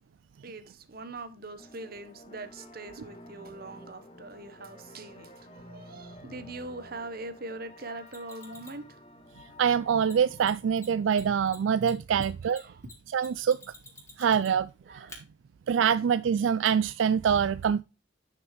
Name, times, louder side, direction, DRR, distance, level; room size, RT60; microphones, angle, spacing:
voice 1, 0.4-9.0 12.2-12.8 14.8-15.2, right 2 dB, 55° right, 1.2 m, -42 dB
sound 1, 1.6-11.1, left 1 dB, 30° left, 1.3 m, -51 dB
Mechanisms, 8.1-8.8 10.0-10.1 10.4-10.5 10.8-10.9 11.1-14.7 15.1-15.2 16.6-16.7, left 2 dB, 15° left, 2.8 m, -49 dB
voice 2, 9.6-12.6 13.1-13.6 14.2-15.1 15.7-17.8, right 7 dB, 85° right, 0.4 m, -25 dB
9.9 x 6.1 x 3.3 m
head